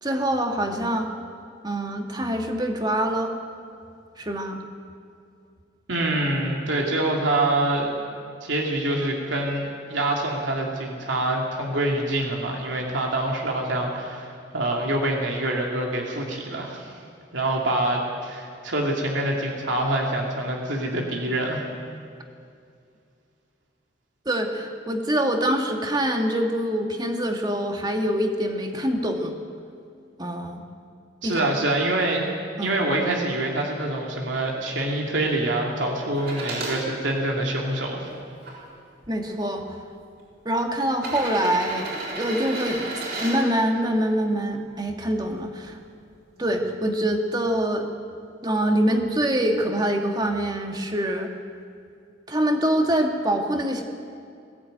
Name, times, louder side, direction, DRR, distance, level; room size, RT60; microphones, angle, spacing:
voice 1, 0.0-1.1 1.6-3.3 4.2-4.6 24.3-29.4 30.2-30.6 31.2-31.5 32.6-32.8 39.1-39.8 40.5-42.8 43.2-45.8 46.4-47.9 48.4-51.3 52.3-53.8, right 1 dB, 20° right, 3 dB, 1.9 m, -25 dB
voice 2, 5.9-8.0 8.4-16.9 17.3-21.7 31.2-32.3 32.6-38.1, right 1 dB, 85° right, 0 dB, 2.9 m, -25 dB
sound 1, 36.2-36.8 37.5-38.5 39.5-39.6 40.9-43.4 45.2-45.3, right 2 dB, 55° right, 6.9 m, -33 dB
20.5 x 15.5 x 9.2 m, 2.4 s
head